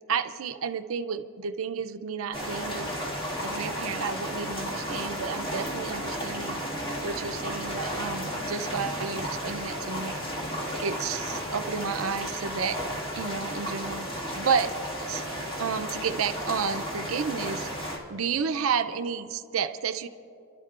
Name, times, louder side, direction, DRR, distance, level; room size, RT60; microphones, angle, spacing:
voice 1, 0.1-2.9 3.4-6.6 7.0-10.1 10.8-12.8 13.1-14.7 15.1-15.3 15.6-17.7 18.1-20.1, right 6 dB, 80° right, 9 dB, 0.5 m, -31 dB
sound 1, 2.3-18.0, equal, 25° left, 1.9 m, -33 dB
28.5 x 12.5 x 2.4 m, 2.6 s
head